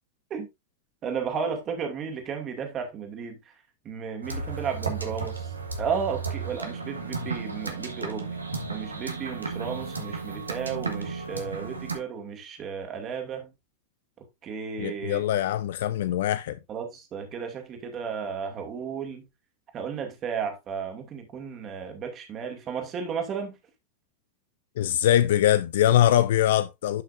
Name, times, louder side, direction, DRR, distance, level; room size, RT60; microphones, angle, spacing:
voice 1, 1.0-3.4 3.9-5.4 5.8-8.3 8.7-13.5 14.4-15.2 16.7-19.2 19.7-23.5, right 6 dB, 30° right, 2.2 m, -33 dB
sound 1, 4.2-12.0, right 4 dB, 80° right, 1.6 m, -34 dB
voice 2, 14.8-16.6 24.8-27.0, left 12 dB, 55° left, 0.5 m, -22 dB
11.0 x 5.7 x 2.6 m
figure-of-eight pair, 90°, 0 cm